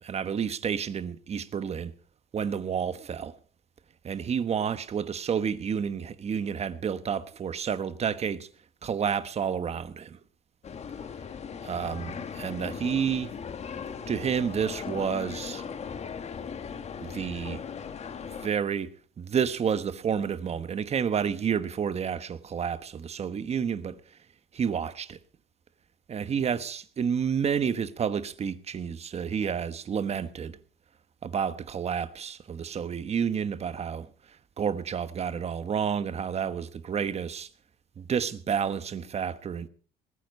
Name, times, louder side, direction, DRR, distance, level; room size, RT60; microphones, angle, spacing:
voice 1, 0.0-1.9 2.3-3.3 4.0-8.5 8.8-10.2 11.6-13.4 14.1-15.6 17.0-17.7 18.4-18.9 19.2-24.0 24.5-25.2 26.1-30.6 31.2-37.5 38.0-39.7, right 7 dB, 40° right, 1.2 m, -30 dB
sound 1, 10.6-18.5, left 6 dB, 40° left, 1.4 m, -38 dB
20.0 x 9.2 x 5.4 m
cardioid pair, 110°, 17 cm